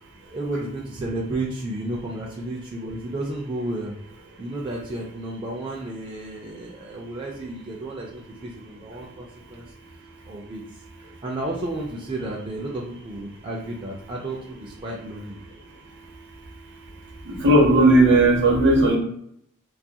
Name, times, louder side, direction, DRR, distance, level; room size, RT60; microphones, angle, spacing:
voice 1, 0.3-3.9 4.4-9.7 10.3-10.6 11.2-15.4, right 2 dB, 25° right, -3 dB, 0.3 m, -32 dB
voice 2, 17.0-19.0, right 1 dB, 60° right, 1 dB, 0.6 m, -17 dB
2.4 x 2.2 x 2.7 m, 0.71 s
head